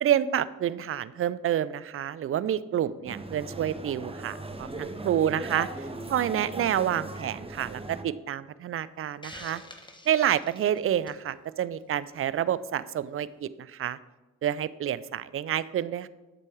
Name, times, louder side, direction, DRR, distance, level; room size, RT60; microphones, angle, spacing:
voice 1, 0.0-9.6 10.1-14.0 14.4-16.1, right 10 dB, 35° right, 17 dB, 0.4 m, -28 dB
sound 1, 3.0-8.0, right 2 dB, 15° right, 1.1 m, -38 dB
Hiss, 9.2-11.3, left 2 dB, 10° left, 1.3 m, -46 dB
7.6 x 6.1 x 4.7 m, 1.2 s
hypercardioid pair, 40°, 41 cm